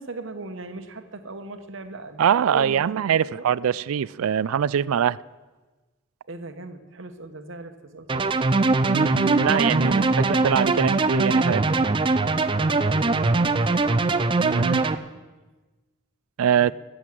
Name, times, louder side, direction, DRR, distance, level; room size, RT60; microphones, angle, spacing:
voice 1, 0.0-2.8 3.1-3.5 6.3-8.5 9.9-10.2 12.5-14.9 16.5-16.7, right 3 dB, 65° right, 1.1 m, -39 dB
voice 2, 2.2-5.2 8.9-11.6 14.4-14.8 16.4-16.7, right 8 dB, 90° right, 0.4 m, -23 dB
sound 1, 8.1-15.0, right 3 dB, 25° right, 0.5 m, -21 dB
14.5 x 8.0 x 7.6 m
head